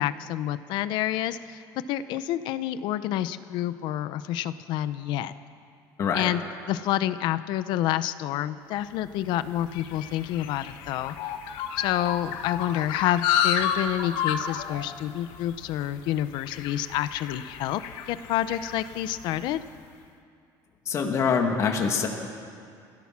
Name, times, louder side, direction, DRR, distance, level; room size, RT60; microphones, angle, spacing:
voice 1, 0.0-1.6 1.9-5.3 6.1-11.1 11.8-17.8 18.1-19.6, left 12 dB, 70° left, 13 dB, 0.8 m, -28 dB
sound 1, 9.0-19.6, left 8 dB, 85° left, 1.4 m, -32 dB
voice 2, 20.9-22.1, left 6 dB, 35° left, 2 dB, 2.1 m, -24 dB
29.5 x 16.0 x 6.1 m, 2.4 s
cardioid pair, 160°, 8 cm